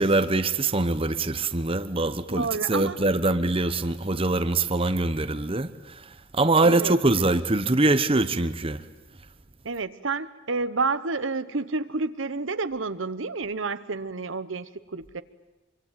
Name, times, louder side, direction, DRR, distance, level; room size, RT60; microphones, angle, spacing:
voice 1, 0.0-8.8, right 2 dB, 25° right, 1.0 m, -23 dB
voice 2, 2.3-3.0 6.6-7.4 9.6-15.2, right 3 dB, 70° right, 1.1 m, -30 dB
25.0 x 24.5 x 9.1 m
head